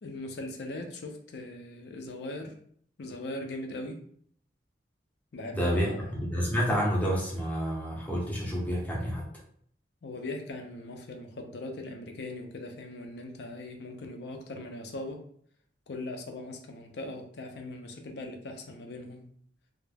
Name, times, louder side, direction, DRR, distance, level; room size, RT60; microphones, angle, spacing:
voice 1, 0.0-2.6 3.0-4.0 5.3-6.2 10.0-15.2 15.9-19.3, left 2 dB, 60° left, 4 dB, 0.4 m, -40 dB
voice 2, 5.5-5.9 6.2-9.3, equal, 10° left, -3 dB, 0.6 m, -29 dB
2.3 x 2.0 x 3.2 m, 0.62 s
head